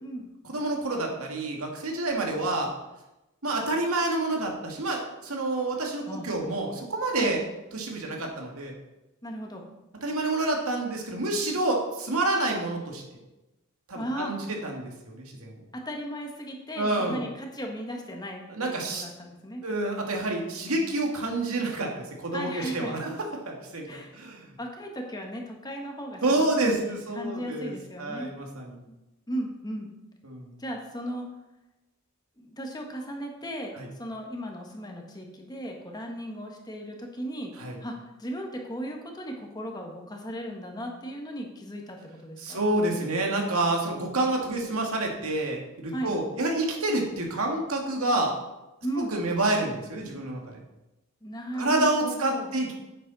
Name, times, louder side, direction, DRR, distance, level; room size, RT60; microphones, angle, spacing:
voice 1, 0.4-2.7 3.4-7.4 7.7-8.7 10.0-13.2 13.9-14.4 14.6-15.6 16.8-17.2 18.5-19.0 19.6-23.1 23.5-24.5 26.2-28.8 30.2-30.5 33.8-33.9 37.6-37.8 42.4-48.3 49.0-50.6 51.5-52.7, right 2 dB, 85° right, 1 dB, 2.1 m, -28 dB
voice 2, 9.2-9.6 13.9-14.3 15.7-19.6 22.3-23.0 23.9-24.1 24.6-26.4 26.8-28.3 28.9-29.0 29.3-29.9 30.6-31.3 32.4-42.6 45.9-46.1 48.8-49.1 51.2-52.5, right 1 dB, 20° left, 2 dB, 1.4 m, -36 dB
10.0 x 8.7 x 4.1 m, 0.99 s
head